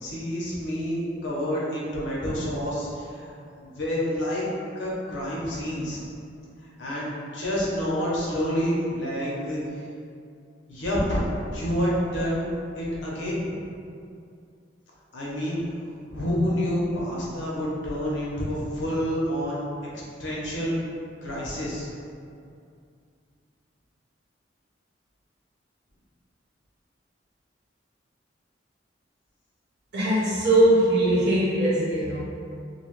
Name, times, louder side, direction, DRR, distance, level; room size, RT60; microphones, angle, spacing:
voice 1, 0.0-3.3 3.7-4.4 4.7-6.0 6.8-9.6 10.7-11.3 11.5-12.5 12.8-13.6 15.1-15.6 16.1-19.6 20.2-20.7 21.2-21.9, equal, 90° left, -6 dB, 0.8 m, -28 dB
voice 2, 29.9-32.2, right 1 dB, 70° right, -8 dB, 0.9 m, -21 dB
2.7 x 2.3 x 3.1 m, 2.4 s
head